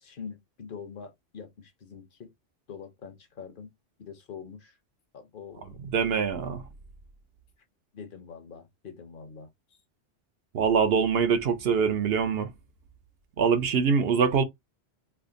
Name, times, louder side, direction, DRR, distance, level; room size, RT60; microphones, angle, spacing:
voice 1, 0.0-2.3 2.7-3.7 4.0-4.8 5.1-5.8 7.9-9.5 14.1-14.4, left 6 dB, 50° left, 0.8 m, -44 dB
voice 2, 5.9-6.6 10.5-12.5 13.4-14.4, right 6 dB, 65° right, 0.9 m, -24 dB
3.4 x 2.1 x 3.7 m
omnidirectional pair, 1.2 m